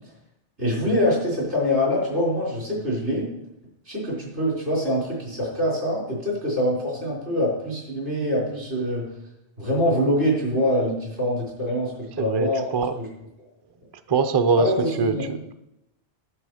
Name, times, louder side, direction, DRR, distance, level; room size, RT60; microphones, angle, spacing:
voice 1, 0.6-3.3 3.9-9.1 9.6-11.9 12.2-12.6 13.0-13.1 14.6-15.2, equal, 75° right, -4 dB, 5.0 m, -24 dB
voice 2, 12.2-12.9 14.1-14.7 15.0-15.5, right 4 dB, 35° right, 9 dB, 0.4 m, -23 dB
11.0 x 7.5 x 5.0 m, 0.88 s
omnidirectional pair, 1.2 m